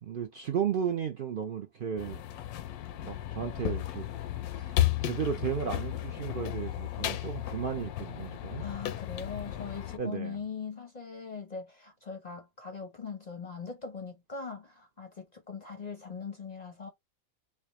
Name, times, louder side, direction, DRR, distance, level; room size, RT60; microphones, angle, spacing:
voice 1, 0.0-2.2 3.0-4.1 4.5-8.6 10.0-10.4, right 8 dB, 65° right, 0.5 m, -34 dB
sound 1, 2.0-10.0, left 13 dB, 85° left, 1.1 m, -34 dB
voice 2, 8.6-16.9, left 5 dB, 45° left, 0.6 m, -41 dB
4.3 x 2.3 x 3.0 m
omnidirectional pair, 1.5 m